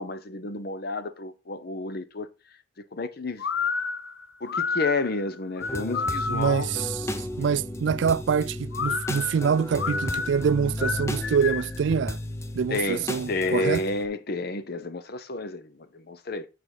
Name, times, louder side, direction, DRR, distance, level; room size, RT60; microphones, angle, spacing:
voice 1, 0.0-2.3 2.8-3.4 4.4-6.7 12.7-16.5, left 2 dB, 55° left, 0.8 m, -30 dB
sound 1, 3.4-6.7 8.7-11.8, left 5 dB, 90° left, 0.6 m, -30 dB
sound 2, 5.6-14.1, left 1 dB, 15° left, 0.7 m, -34 dB
voice 2, 6.3-7.0 7.4-12.2 12.5-13.8, right 6 dB, 75° right, 0.3 m, -25 dB
8.7 x 4.7 x 4.9 m
head